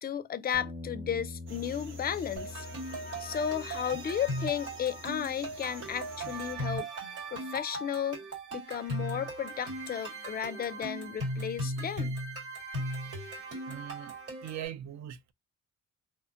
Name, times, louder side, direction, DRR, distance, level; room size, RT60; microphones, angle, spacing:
voice 1, 0.0-2.7 3.2-6.9 7.3-8.2 8.5-12.2, left 8 dB, 30° left, 0.4 m, -34 dB
Bass guitar, 0.5-6.8, left 3 dB, 10° right, 0.7 m, -46 dB
sound 1, 1.4-6.5, right 3 dB, 40° right, 0.9 m, -51 dB
sound 2, 2.4-14.7, right 1 dB, 85° right, 1.9 m, -38 dB
voice 2, 13.7-14.1 14.4-15.3, right 10 dB, 65° right, 0.5 m, -40 dB
2.8 x 2.1 x 2.5 m
cardioid pair, 90°, 30 cm